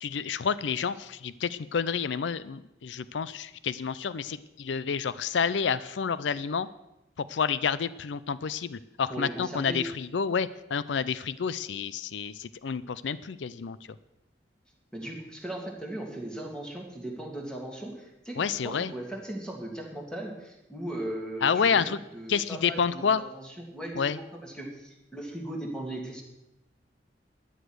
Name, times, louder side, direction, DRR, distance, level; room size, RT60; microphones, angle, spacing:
voice 1, 0.0-6.7 7.3-13.8 18.4-18.9 21.4-22.0 22.3-23.2 24.0-24.2, left 6 dB, 90° left, 17 dB, 0.5 m, -29 dB
voice 2, 9.1-9.8 14.9-26.2, right 1 dB, 5° left, 0 dB, 2.7 m, -38 dB
13.0 x 10.0 x 6.3 m, 0.91 s
head